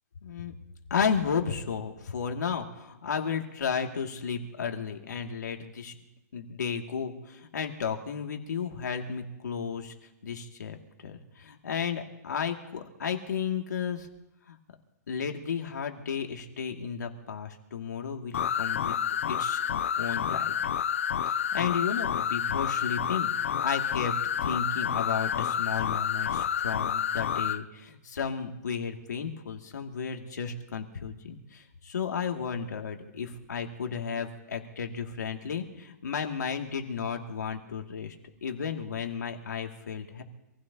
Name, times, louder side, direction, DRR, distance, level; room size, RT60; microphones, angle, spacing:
voice 1, 0.2-0.5 0.9-6.0 6.3-9.9 10.2-10.8 11.0-14.1 14.5-14.6 15.1-19.0 19.3-19.6 20.0-20.5 21.3-24.1 24.4-38.2 38.4-40.2, left 6 dB, 85° left, 3 dB, 2.3 m, -33 dB
sound 1, 18.3-27.6, left 8 dB, 50° left, 0.5 m, -29 dB
27.0 x 16.0 x 2.9 m, 0.95 s
hypercardioid pair, 180°, 9 cm